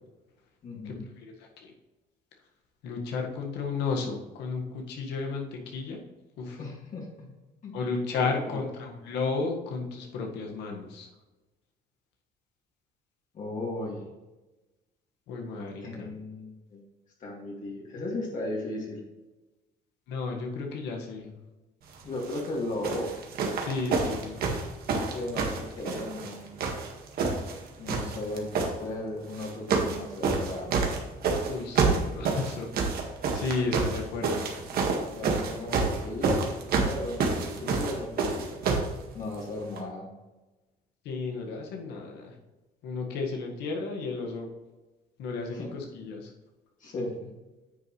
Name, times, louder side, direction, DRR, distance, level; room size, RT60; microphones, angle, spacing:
voice 1, 0.6-1.0 6.6-7.3 7.6-7.8 8.2-8.7 13.3-14.0 15.8-16.8 17.2-19.0 22.0-23.1 25.0-26.5 27.8-28.5 28.8-30.9 34.7-36.5 36.8-38.6 39.1-40.1 45.5-45.7 46.8-47.3, left 2 dB, 50° left, -3 dB, 2.4 m, -36 dB
voice 2, 2.8-6.0 6.4-6.6 7.7-11.1 15.3-16.1 20.1-21.3 23.6-24.4 31.5-32.7 33.3-34.5 41.1-42.3 42.8-44.5 45.2-46.3, left 4 dB, 85° left, 1 dB, 1.7 m, -33 dB
sound 1, 22.2-22.5 22.8-26.3 26.6-27.6 27.9-28.7 29.3-30.0 30.2-38.9 39.8-39.9, right 4 dB, 65° right, 1.8 m, -28 dB
9.6 x 6.9 x 3.2 m, 1.1 s
cardioid pair, 110°, 17 cm